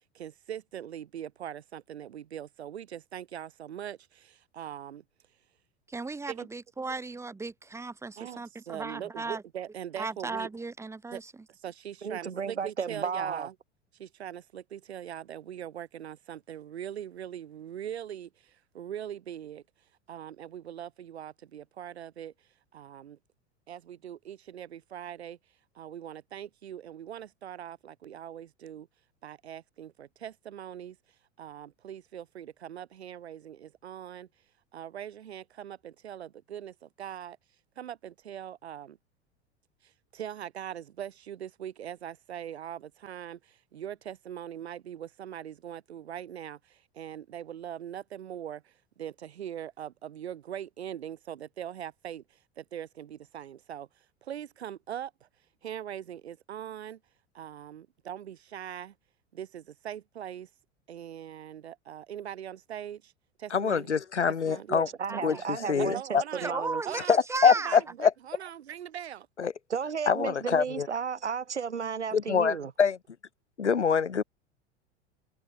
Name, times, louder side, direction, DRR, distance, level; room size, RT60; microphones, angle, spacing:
voice 1, 0.1-5.0 6.3-6.5 8.2-10.5 11.1-11.2 11.5-13.5 14.0-19.6 20.1-22.3 22.7-23.2 23.7-25.4 25.7-28.9 29.2-31.0 31.4-34.3 34.7-37.4 37.8-39.0 39.8-53.9 54.2-55.3 55.6-57.0 57.3-58.9 59.3-60.5 60.9-63.1 63.4-63.9 64.3-64.7 65.3-65.4 65.8-66.6 66.8-67.2 67.4-69.3, right 10 dB, 65° right, 4.2 m, -41 dB
voice 2, 5.9-9.4 10.0-11.3 65.1-65.7 66.4-67.8, right 3 dB, 10° right, 1.1 m, -36 dB
voice 3, 12.0-13.5 64.7-66.8 69.7-72.7, right 6 dB, 85° right, 0.8 m, -33 dB
voice 4, 63.5-64.9 65.2-66.2 67.1-68.1 69.4-69.5 70.1-70.9 72.1-73.0 73.6-74.2, left 6 dB, 80° left, 0.9 m, -25 dB
figure-of-eight pair, 85°, 34 cm